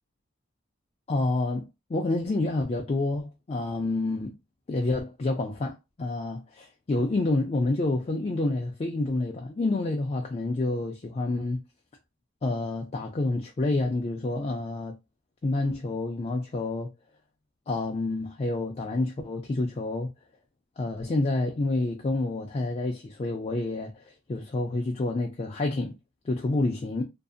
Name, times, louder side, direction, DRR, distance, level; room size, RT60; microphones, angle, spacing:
voice 1, 1.1-4.3 4.7-11.6 12.4-15.0 15.4-16.9 17.7-20.1 20.8-25.9 26.3-27.0, left 2 dB, 30° left, 0.3 m, -28 dB
2.6 x 2.4 x 2.3 m
head